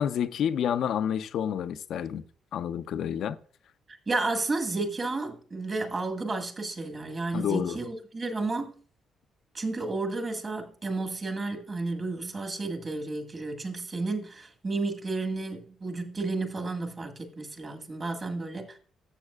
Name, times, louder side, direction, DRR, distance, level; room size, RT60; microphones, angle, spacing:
voice 1, 0.0-2.2 2.5-3.4 7.3-7.8, left 9 dB, 70° left, 0.6 m, -29 dB
voice 2, 4.1-8.7 9.5-18.8, right 3 dB, 35° right, 1.7 m, -32 dB
13.0 x 7.2 x 2.4 m
cardioid pair, 90°, 0 cm